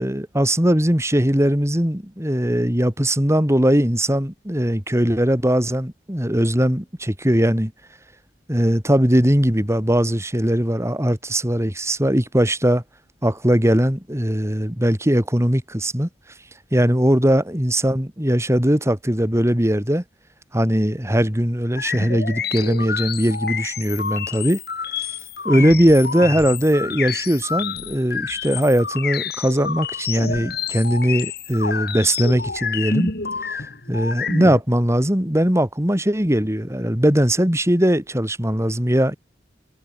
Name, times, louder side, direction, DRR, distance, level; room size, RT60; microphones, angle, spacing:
voice 1, 0.0-7.7 8.5-12.8 13.2-16.1 16.7-20.0 20.5-24.6 25.5-33.1 33.9-39.2, equal, 15° right, 3.5 m, -20 dB
sound 1, 21.8-34.6, left 5 dB, 60° left, 7.4 m, -28 dB
head